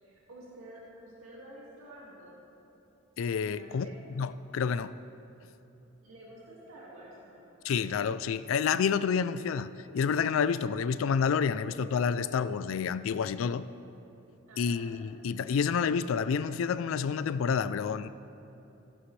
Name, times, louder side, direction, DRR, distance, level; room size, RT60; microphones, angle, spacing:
voice 1, 0.0-2.4 3.5-4.1 6.0-7.5 14.5-14.9, right 1 dB, 85° right, 2.2 m, -50 dB
voice 2, 3.2-4.9 7.6-13.7 14.6-18.1, left 6 dB, 70° left, 0.3 m, -29 dB
14.5 x 11.0 x 3.2 m
head